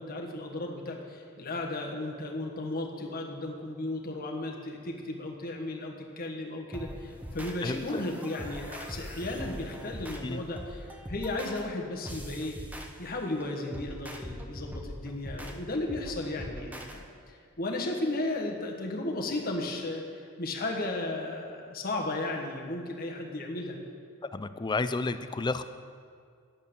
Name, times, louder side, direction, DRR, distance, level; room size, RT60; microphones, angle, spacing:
voice 1, 0.0-12.6 13.0-23.8, left 2 dB, 40° left, 1 dB, 1.4 m, -35 dB
sound 1, 6.7-17.0, equal, 5° right, 0.8 m, -42 dB
voice 2, 7.6-8.0 10.2-10.4 24.3-25.6, left 3 dB, 20° left, 12 dB, 0.4 m, -31 dB
10.5 x 8.4 x 6.9 m, 2.2 s
head